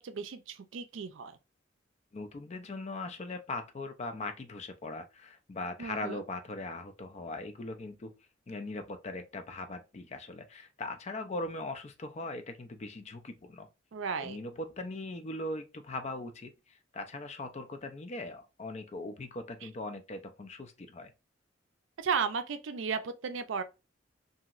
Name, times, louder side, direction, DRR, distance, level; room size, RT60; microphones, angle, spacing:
voice 1, 0.0-1.4 5.8-6.2 13.9-14.4 19.6-19.7 22.0-23.6, right 6 dB, 80° right, 0.4 m, -34 dB
voice 2, 2.1-8.1 8.5-13.7 14.2-21.1, left 2 dB, 35° left, 0.4 m, -40 dB
2.9 x 2.7 x 2.4 m
head